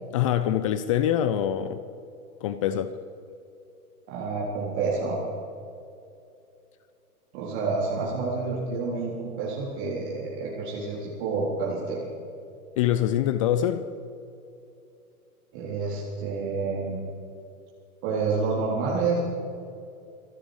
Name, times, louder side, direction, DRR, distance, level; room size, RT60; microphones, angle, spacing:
voice 1, 0.1-1.8 2.4-2.9 12.8-13.9, left 11 dB, 25° left, 0.4 m, -24 dB
voice 2, 4.1-5.2 7.3-12.1 15.5-17.0 18.0-19.2, right 4 dB, 45° right, 3.7 m, -28 dB
26.0 x 10.0 x 4.9 m
figure-of-eight pair, 110°, 45 cm